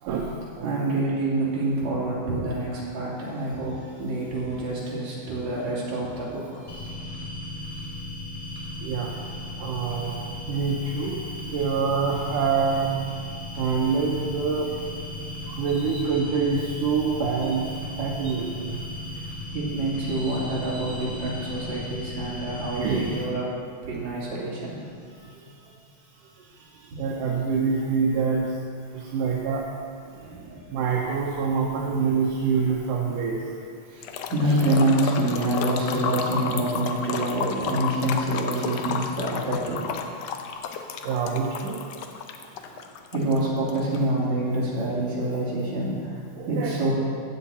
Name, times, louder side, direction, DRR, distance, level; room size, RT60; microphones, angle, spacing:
voice 1, 0.0-1.0 8.8-9.2 9.6-12.9 13.6-15.1 15.5-18.9 19.1-19.3 22.8-23.1 27.0-28.6 28.9-29.7 30.5-33.6 34.2-34.6 41.0-41.9 46.4-46.8, right 5 dB, 80° right, -2 dB, 2.4 m, -26 dB
voice 2, 0.6-6.9 18.2-18.3 19.5-23.5 23.8-24.8 25.1-25.4 26.5-27.0 28.9-29.2 30.1-30.8 33.9-39.8 42.5-42.8 43.1-46.9, right 1 dB, 60° right, -6 dB, 3.8 m, -27 dB
sound 1, 6.7-23.2, left 2 dB, 15° left, 2.3 m, -36 dB
sound 2, 34.0-44.0, left 6 dB, 80° left, 1.4 m, -32 dB
15.5 x 8.2 x 4.2 m, 2.2 s
omnidirectional pair, 3.8 m